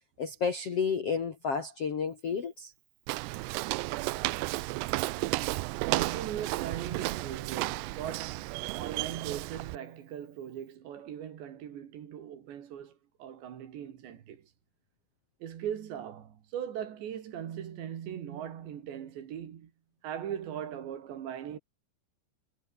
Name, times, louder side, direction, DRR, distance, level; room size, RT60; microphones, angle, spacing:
voice 1, 0.2-2.7, left 6 dB, 50° left, 1.8 m, -31 dB
Walk footsteps, 3.1-9.8, right 22 dB, 90° right, 2.3 m, -33 dB
voice 2, 5.8-14.5 15.4-19.7 20.0-21.6, right 9 dB, 70° right, 4.6 m, -39 dB
omnidirectional pair, 5.4 m